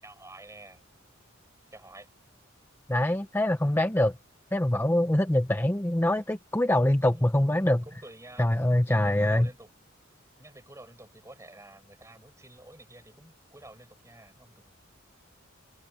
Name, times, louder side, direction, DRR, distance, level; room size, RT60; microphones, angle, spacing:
voice 1, 0.0-0.8 1.7-2.1 7.0-9.7 10.4-14.8, right 1 dB, 15° right, 7.5 m, -50 dB
voice 2, 2.9-4.2 4.5-7.8 8.4-9.5, left 1 dB, 10° left, 0.7 m, -24 dB
head